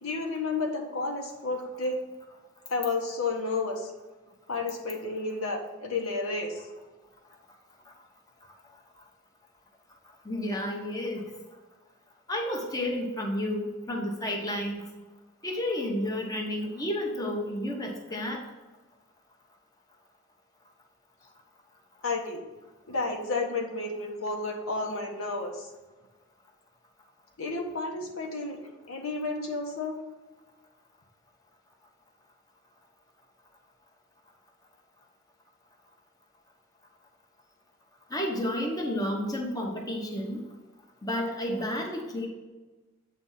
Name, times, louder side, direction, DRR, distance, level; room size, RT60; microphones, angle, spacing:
voice 1, 0.0-2.0 2.7-3.9 4.5-6.7 22.0-22.4 22.9-25.7 27.4-28.6 28.9-30.0, left 3 dB, 75° left, 2 dB, 1.2 m, -31 dB
voice 2, 10.2-11.2 12.3-14.9 15.4-18.4 38.1-40.4 41.0-42.3, left 1 dB, 20° left, 0 dB, 0.9 m, -31 dB
8.0 x 3.5 x 5.6 m, 1.2 s
head